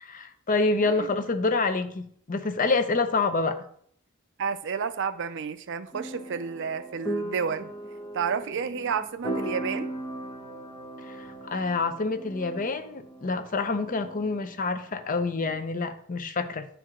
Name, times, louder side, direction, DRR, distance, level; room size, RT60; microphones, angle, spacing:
voice 1, 0.0-3.6 11.0-16.7, left 3 dB, 40° left, 0.6 m, -27 dB
voice 2, 4.4-7.7 8.1-9.9, right 6 dB, 60° right, 0.5 m, -30 dB
Piano pling, 5.9-15.6, right 1 dB, 20° left, 1.0 m, -38 dB
10.5 x 4.6 x 3.7 m
head